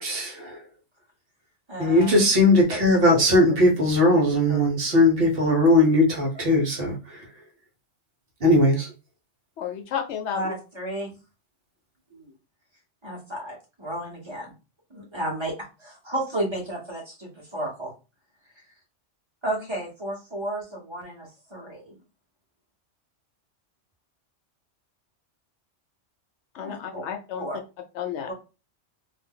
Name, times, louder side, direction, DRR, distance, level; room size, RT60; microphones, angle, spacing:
voice 1, 0.0-0.5 1.8-7.2 8.4-8.9, left 1 dB, 55° right, 0 dB, 1.1 m, -19 dB
voice 2, 1.7-2.2 4.5-4.6 10.3-11.1 12.1-12.3 13.0-14.5 14.9-15.5 15.8-17.9 19.4-21.9 26.6-27.0 27.4-27.6 28.3-28.4, right 1 dB, 25° right, -2 dB, 1.0 m, -33 dB
voice 3, 9.6-10.5 26.5-27.5 27.9-28.3, left 8 dB, 75° left, 5 dB, 0.9 m, -32 dB
2.6 x 2.2 x 3.6 m, 0.30 s
omnidirectional pair, 1.2 m